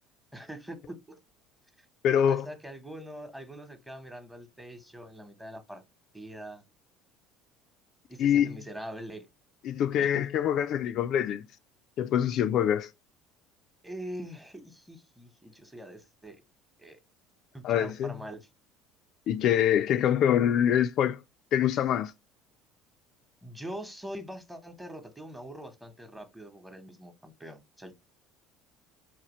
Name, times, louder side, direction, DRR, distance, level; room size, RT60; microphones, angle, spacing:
voice 1, 0.3-1.2 2.3-5.8 6.1-6.6 8.1-9.3 10.0-10.3 13.8-16.4 16.8-17.0 17.5-18.5 23.4-27.9, right 1 dB, 10° right, 1.0 m, -43 dB
voice 2, 2.0-2.5 8.2-8.6 9.6-11.4 12.0-12.9 17.6-18.1 19.3-21.2 21.5-22.1, left 9 dB, 55° left, 0.3 m, -25 dB
4.7 x 2.9 x 3.0 m
hypercardioid pair, 80°, 0 cm